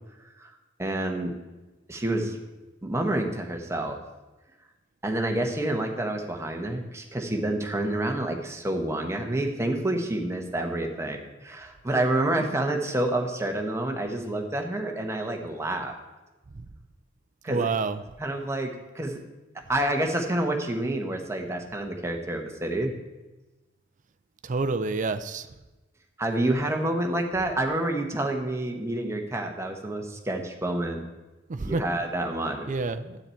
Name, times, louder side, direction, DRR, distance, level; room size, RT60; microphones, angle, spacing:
voice 1, 0.8-1.4 1.9-2.4 2.8-4.0 5.0-16.0 17.4-17.7 18.2-19.2 19.7-22.9 26.2-31.0 31.6-32.7, right 1 dB, 15° right, 3 dB, 1.1 m, -28 dB
voice 2, 17.5-18.0 24.4-25.5 31.5-31.8 32.7-33.2, right 4 dB, 40° right, 10 dB, 0.5 m, -28 dB
9.8 x 8.4 x 4.5 m, 1.1 s
head